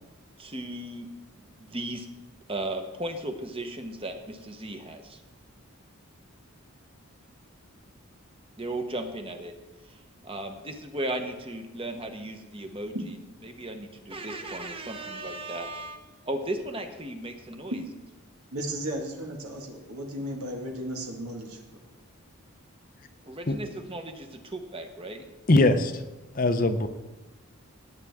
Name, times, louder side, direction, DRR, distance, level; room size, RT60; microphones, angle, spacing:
voice 1, 0.4-1.1 1.6-2.1 2.5-5.2 8.6-9.5 10.2-12.9 13.4-17.8 23.3-25.2, right 1 dB, 25° right, 6 dB, 1.0 m, -35 dB
voice 2, 18.5-21.6, right 1 dB, 85° right, 1 dB, 1.9 m, -35 dB
voice 3, 25.5-25.9 26.4-26.9, left 2 dB, 40° left, 9 dB, 0.6 m, -21 dB
17.5 x 8.7 x 3.6 m, 1.1 s
head